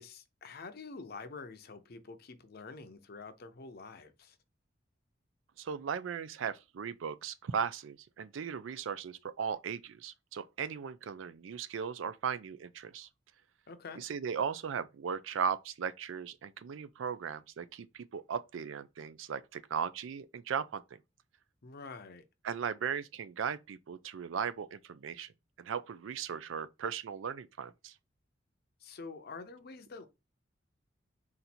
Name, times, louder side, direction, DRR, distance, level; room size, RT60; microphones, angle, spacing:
voice 1, 0.0-4.4 13.7-14.0 21.6-22.2 28.8-30.1, left 4 dB, 50° left, 0.6 m, -47 dB
voice 2, 5.6-13.1 14.0-21.0 22.4-25.3 25.6-28.0, right 7 dB, 80° right, 0.4 m, -37 dB
4.1 x 2.6 x 4.2 m
head